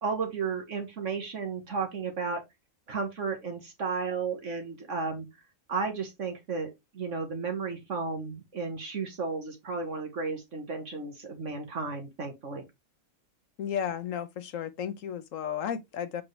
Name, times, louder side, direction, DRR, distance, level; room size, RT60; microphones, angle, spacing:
voice 1, 0.0-2.4 2.9-5.2 5.7-12.6, right 4 dB, 65° right, 1.8 m, -33 dB
voice 2, 13.6-16.2, left 8 dB, 75° left, 1.3 m, -33 dB
7.6 x 5.3 x 3.2 m
omnidirectional pair, 1.4 m